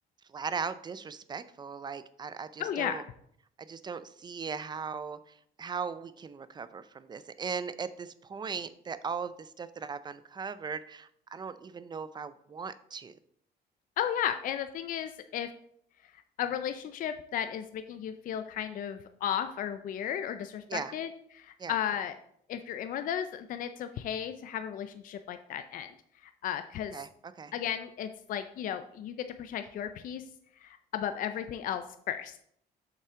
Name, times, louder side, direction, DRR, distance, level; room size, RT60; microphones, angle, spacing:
voice 1, 0.3-3.0 3.6-13.1 20.7-20.9 21.6-21.8 26.9-27.5, right 5 dB, 25° right, 14 dB, 0.4 m, -38 dB
voice 2, 2.6-3.0 14.0-15.5 16.4-22.2 22.5-25.9 26.4-27.0 27.5-30.2 30.6-32.4, left 9 dB, 55° left, 9 dB, 0.5 m, -34 dB
6.7 x 5.7 x 3.7 m, 0.67 s
cardioid pair, 110°, 17 cm